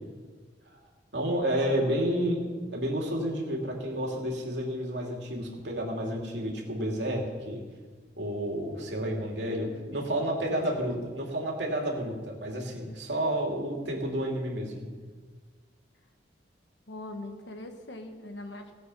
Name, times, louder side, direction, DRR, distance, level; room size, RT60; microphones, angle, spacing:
voice 1, 1.1-7.6 8.2-14.8, right 1 dB, 70° right, -1 dB, 2.9 m, -30 dB
voice 2, 9.5-10.8 16.9-18.7, left 2 dB, 70° left, 5 dB, 1.4 m, -42 dB
18.0 x 7.9 x 5.6 m, 1.4 s
head